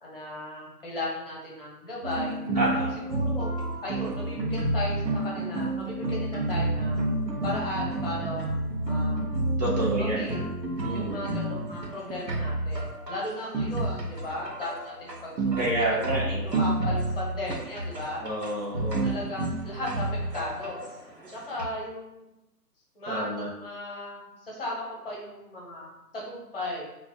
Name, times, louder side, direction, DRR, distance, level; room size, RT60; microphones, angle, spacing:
voice 1, 0.0-2.4 3.0-3.5 3.8-7.0 7.4-8.5 8.9-9.2 10.0-10.5 10.9-15.6 15.9-16.1 16.4-18.2 19.0-20.1 20.3-20.8 21.3-22.3 22.9-26.8, left 1 dB, 35° left, -4 dB, 0.7 m, -36 dB
sound 1, 2.0-21.7, right 2 dB, 90° right, 0.8 m, -30 dB
voice 2, 2.5-3.0 9.6-10.3 10.8-11.2 15.6-16.4 18.2-19.1 23.1-23.5, right 1 dB, 30° right, -7 dB, 0.5 m, -29 dB
2.5 x 2.0 x 3.9 m, 0.96 s
figure-of-eight pair, 135°, 48 cm